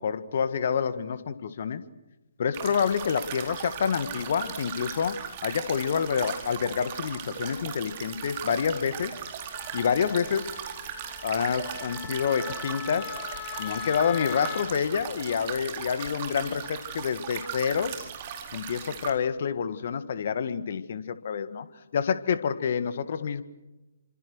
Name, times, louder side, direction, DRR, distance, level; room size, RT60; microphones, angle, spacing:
voice 1, 0.0-1.8 2.4-9.2 9.7-10.5 11.2-13.2 13.6-18.1 18.5-21.7 21.9-23.4, left 7 dB, 50° left, 13 dB, 1.9 m, -28 dB
sound 1, 2.5-19.1, right 8 dB, 35° right, 4.5 m, -38 dB
Wind instrument woodwind instrument, 9.5-14.7, left 10 dB, 20° left, 2.2 m, -40 dB
30.0 x 26.0 x 6.3 m, 1.0 s
figure-of-eight pair, 130°, 0 cm